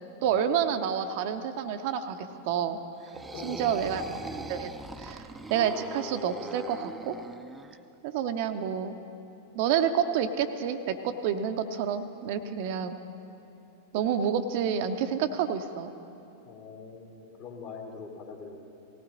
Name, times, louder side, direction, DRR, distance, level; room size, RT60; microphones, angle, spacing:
voice 1, 0.2-2.2 2.4-2.8 3.4-4.0 4.5-4.7 5.0-7.2 8.0-9.0 9.5-13.0 13.9-15.9, right 8 dB, 50° right, 8 dB, 0.6 m, -29 dB
sound 1, 3.0-7.8, right 2 dB, 10° right, 0.5 m, -41 dB
voice 2, 3.3-3.9 16.5-18.7, left 4 dB, 40° left, 2 dB, 1.9 m, -43 dB
18.0 x 16.0 x 4.0 m, 2.9 s
figure-of-eight pair, 90°, 0 cm